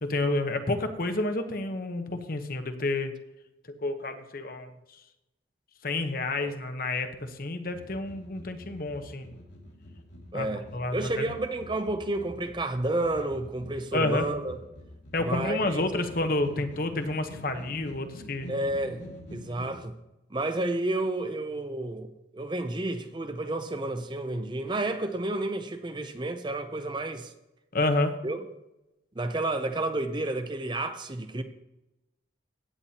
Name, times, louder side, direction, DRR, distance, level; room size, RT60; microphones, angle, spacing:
voice 1, 0.0-3.1 3.8-4.7 5.8-9.3 10.3-11.3 13.9-14.3 15.1-18.5 27.7-28.2, left 2 dB, 50° left, 1.0 m, -29 dB
sound 1, 7.7-19.8, equal, 75° left, 2.5 m, -47 dB
voice 2, 10.3-10.7 10.9-14.6 15.2-15.9 18.5-19.0 19.3-19.9 20.3-27.3 28.2-28.4 29.2-31.4, right 2 dB, 25° right, 0.6 m, -31 dB
16.0 x 8.7 x 2.9 m
head